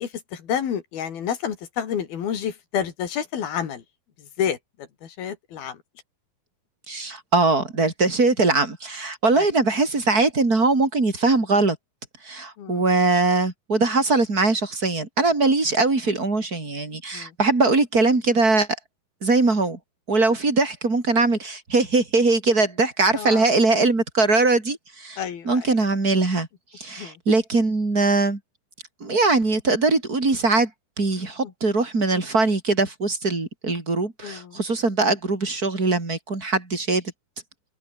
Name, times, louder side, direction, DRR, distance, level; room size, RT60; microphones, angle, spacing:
voice 1, 0.0-3.8 4.2-5.8 9.3-9.5 12.6-12.8 17.1-17.3 23.1-23.5 25.2-25.8 27.0-27.2 31.4-31.5 34.2-34.6, left 8 dB, 75° left, 4.7 m, -30 dB
voice 2, 6.9-11.8 12.2-18.7 19.2-19.8 20.1-25.2 25.4-26.5 26.8-28.4 29.0-30.7 31.0-37.0, right 3 dB, 25° right, 4.5 m, -21 dB
omnidirectional pair, 4.3 m